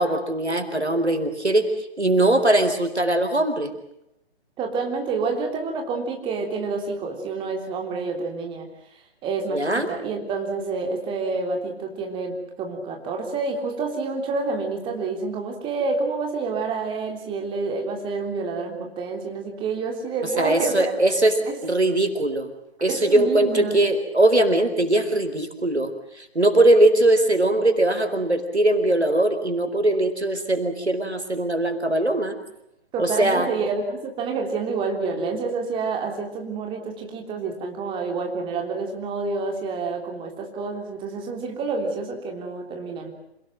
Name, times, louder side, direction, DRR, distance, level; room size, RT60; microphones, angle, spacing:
voice 1, 0.0-1.7 2.0-3.7 9.5-9.9 20.4-21.3 21.6-22.5 22.8-25.9 26.2-32.4 33.0-33.5, right 1 dB, 90° right, 8 dB, 4.5 m, -20 dB
voice 2, 4.6-8.7 9.2-21.1 21.5-21.6 22.9-23.8 32.9-43.1, right 4 dB, 15° right, 3 dB, 3.4 m, -28 dB
28.0 x 18.0 x 7.7 m, 0.83 s
figure-of-eight pair, 135°, 32 cm